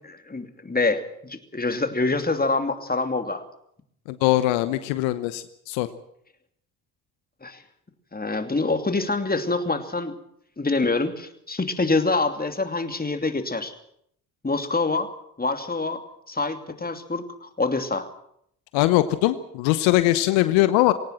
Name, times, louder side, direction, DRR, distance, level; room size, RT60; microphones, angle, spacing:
voice 1, 0.1-3.4 7.4-7.6 8.1-10.1 10.6-13.7 14.4-15.1 15.4-16.0 16.3-18.1, left 3 dB, 20° left, 7 dB, 2.7 m, -26 dB
voice 2, 4.1-5.9 18.7-20.9, left 16 dB, 75° left, 13 dB, 1.0 m, -21 dB
20.0 x 18.0 x 7.6 m, 0.70 s
hypercardioid pair, 45°, 47 cm